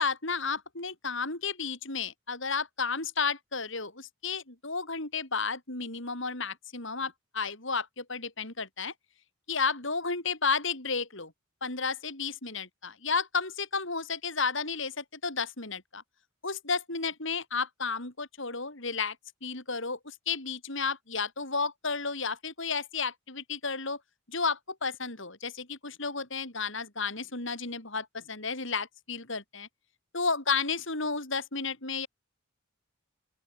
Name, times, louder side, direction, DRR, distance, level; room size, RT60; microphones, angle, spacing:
voice 1, 0.0-8.9 9.5-11.3 11.6-16.0 16.4-19.2 19.4-24.0 24.3-29.7 30.1-32.1, left 4 dB, 60° left, 5.3 m, -32 dB
open air
head